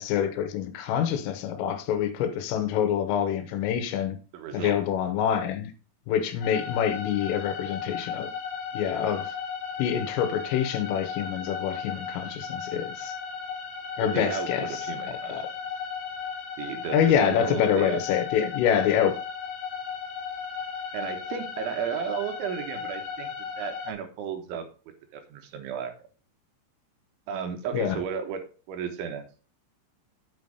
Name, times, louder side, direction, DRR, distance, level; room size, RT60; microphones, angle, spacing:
voice 1, 0.0-4.2 4.5-5.7 6.1-8.3 8.7-9.4 9.8-13.2 14.0-15.5 16.9-19.2 27.7-28.0, left 9 dB, 85° left, 3.6 m, -26 dB
voice 2, 4.3-4.8 14.0-15.3 16.6-18.0 20.9-23.3 23.6-24.6 25.1-25.9 27.3-28.4 28.7-29.2, right 7 dB, 75° right, 3.4 m, -33 dB
sound 1, 6.4-23.9, left 6 dB, 65° left, 3.2 m, -35 dB
8.6 x 5.6 x 5.1 m
omnidirectional pair, 5.8 m